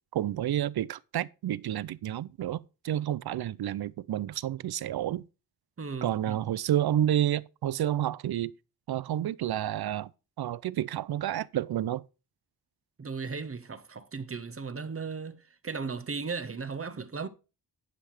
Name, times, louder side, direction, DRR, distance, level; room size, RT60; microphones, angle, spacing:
voice 1, 0.1-5.2 6.0-8.5 8.9-10.1 10.4-12.0, right 11 dB, 75° right, 0.6 m, -30 dB
voice 2, 5.8-6.5 13.0-17.3, right 5 dB, 35° right, 0.9 m, -36 dB
10.0 x 5.8 x 4.8 m
wide cardioid pair, 100°, 38 cm